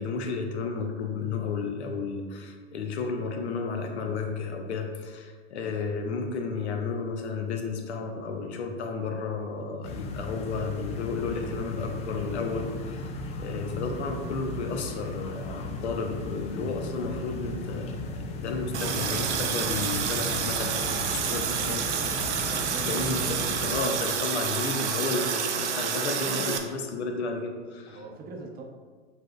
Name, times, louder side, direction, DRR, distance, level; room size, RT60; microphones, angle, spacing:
voice 1, 0.0-13.1 13.4-18.0 18.4-21.9 22.8-28.0, left 4 dB, 70° left, 4 dB, 0.7 m, -32 dB
sound 1, 9.8-23.8, left 2 dB, 20° left, 0.3 m, -36 dB
Water tap faucet, 18.7-26.6, right 7 dB, 75° right, 0.6 m, -29 dB
voice 2, 22.5-23.4 27.9-28.6, right 3 dB, 25° right, 1 dB, 0.7 m, -43 dB
5.9 x 3.6 x 2.2 m, 1.5 s
hypercardioid pair, 90°, 35 cm